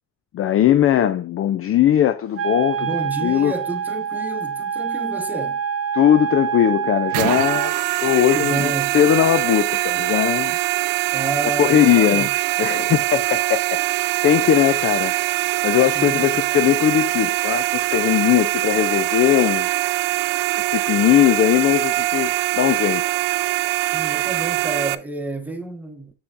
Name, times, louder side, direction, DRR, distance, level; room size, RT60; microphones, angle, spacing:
voice 1, 0.3-2.9 3.2-3.5 5.9-10.6 11.6-12.3 12.6-15.1 15.6-19.9 20.6-23.2, left 11 dB, 30° left, 0.4 m, -19 dB
Wind instrument woodwind instrument, 2.3-7.7, right 8 dB, 30° right, 0.7 m, -26 dB
voice 2, 2.8-5.6 8.3-9.0 11.1-12.3 15.9-16.4 23.9-26.1, right 2 dB, 5° right, 1.2 m, -30 dB
sound 1, 7.1-25.0, right 17 dB, 80° right, 0.6 m, -22 dB
7.1 x 6.7 x 2.5 m
supercardioid pair, 100°, 46 cm